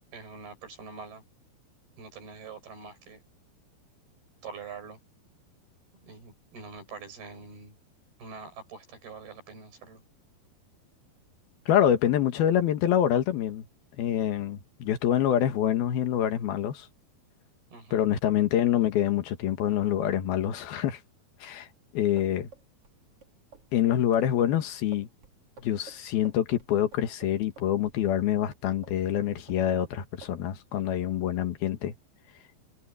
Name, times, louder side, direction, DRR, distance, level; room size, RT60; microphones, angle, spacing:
voice 1, 0.1-1.2 2.0-3.2 4.4-5.0 6.0-7.7 8.2-10.0 17.7-18.0, right 5 dB, 80° right, 8.8 m, -44 dB
voice 2, 11.7-13.7 14.0-16.9 17.9-21.0 21.4-21.7 21.9-22.5 23.7-25.1 25.6-31.9, left 10 dB, 75° left, 3.5 m, -26 dB
sound 1, 22.2-28.5 28.8-30.0 30.2-30.4, right 5 dB, 40° right, 3.4 m, -52 dB
omnidirectional pair, 4.4 m